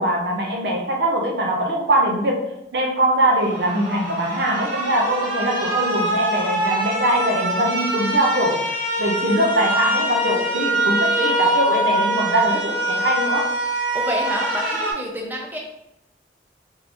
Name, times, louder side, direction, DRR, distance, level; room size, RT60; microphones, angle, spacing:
voice 1, 0.0-2.4 2.7-8.7 9.0-13.5, right 1 dB, 70° right, 1 dB, 0.6 m, -22 dB
sound 1, 3.3-14.9, right 1 dB, 50° right, 1.3 m, -24 dB
voice 2, 13.9-15.6, equal, 10° right, 0 dB, 0.5 m, -28 dB
3.5 x 2.6 x 2.9 m, 0.83 s
head